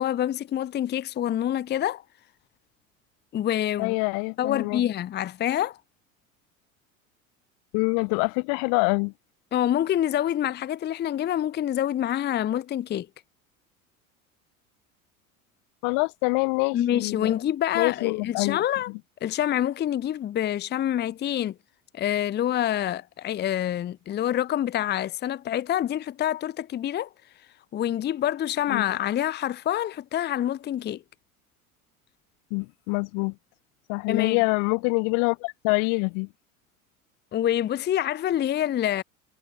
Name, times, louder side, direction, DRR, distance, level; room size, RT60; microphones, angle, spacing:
voice 1, 0.0-2.0 3.3-3.9 4.4-5.8 9.5-13.1 16.7-18.9 19.2-21.5 21.9-27.1 27.7-31.0 34.1-34.4 37.3-39.0, left 11 dB, 25° left, 0.8 m, -26 dB
voice 2, 3.8-4.8 7.7-9.1 15.8-17.4 17.7-18.6 18.9-19.0 28.7-28.9 32.5-33.3 33.9-36.3, left 37 dB, 50° left, 1.1 m, -25 dB
figure-of-eight pair, 75°, 42 cm